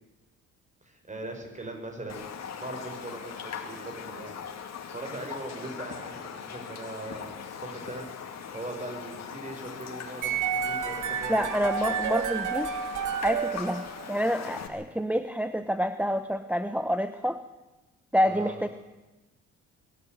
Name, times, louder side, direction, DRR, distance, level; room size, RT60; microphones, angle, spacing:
voice 1, 0.8-2.2 2.6-4.5 4.9-7.3 7.6-8.0 8.5-12.0 18.3-18.6, right 2 dB, 25° right, 4 dB, 5.8 m, -40 dB
Raindrop, 2.1-14.7, left 7 dB, 60° left, 2.7 m, -40 dB
sound 1, 10.2-14.3, right 7 dB, 80° right, 2.2 m, -31 dB
voice 2, 11.3-12.7 13.2-17.4 18.1-18.7, equal, 5° right, 10 dB, 0.9 m, -28 dB
22.5 x 13.0 x 9.3 m, 1.1 s
cardioid pair, 90°, 30 cm